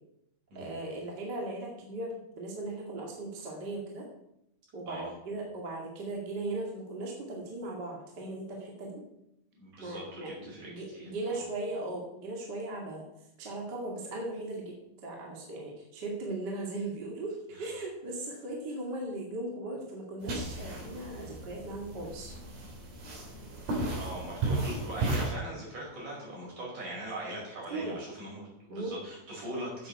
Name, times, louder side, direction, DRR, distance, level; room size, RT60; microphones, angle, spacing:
voice 1, 0.5-4.1 4.7-9.0 9.8-13.0 13.4-14.8 15.0-22.3 27.7-28.0 28.7-28.9, right 2 dB, 35° right, -1 dB, 2.0 m, -38 dB
voice 2, 9.6-11.4 17.5-17.6 24.0-29.9, right 1 dB, 50° right, -4 dB, 6.5 m, -41 dB
sound 1, 20.2-25.3, right 2 dB, 70° right, 4.6 m, -34 dB
8.9 x 7.7 x 6.8 m, 0.80 s
omnidirectional pair, 4.5 m